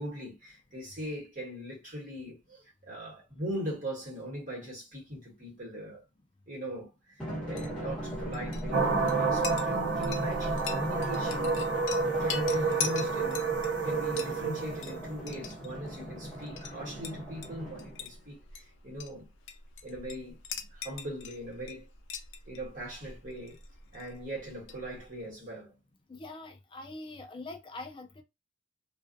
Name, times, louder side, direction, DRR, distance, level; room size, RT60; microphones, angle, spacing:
voice 1, 0.0-6.0 6.5-11.6 12.2-13.5 13.8-19.3 19.8-21.9 22.4-23.6 23.9-25.7, equal, 45° right, 1.3 m, -40 dB
Drum, 7.2-18.2, equal, 5° left, 1.1 m, -40 dB
Chink clink, 7.4-25.2, left 5 dB, 80° left, 0.5 m, -43 dB
sound 1, 8.7-17.6, right 4 dB, 65° right, 0.6 m, -30 dB
voice 2, 26.1-28.2, left 2 dB, 25° left, 0.4 m, -43 dB
2.4 x 2.3 x 2.5 m
head